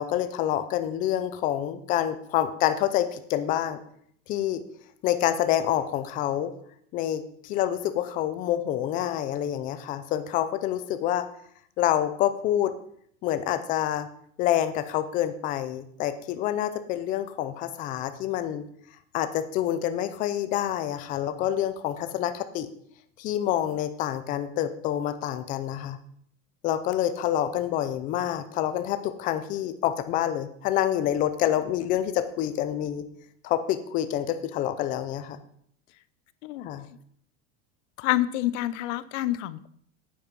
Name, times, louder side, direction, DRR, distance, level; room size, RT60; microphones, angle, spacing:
voice 1, 0.0-3.8 4.3-4.6 5.0-6.5 6.9-11.3 11.8-12.7 13.2-14.1 14.4-18.6 19.1-22.7 23.2-26.0 26.6-33.1 33.4-35.4 36.6-36.8, left 11 dB, 20° left, 10 dB, 0.5 m, -27 dB
voice 2, 38.0-39.7, left 15 dB, 65° left, 16 dB, 0.8 m, -27 dB
9.1 x 8.8 x 5.3 m, 0.65 s
supercardioid pair, 175°, 39 cm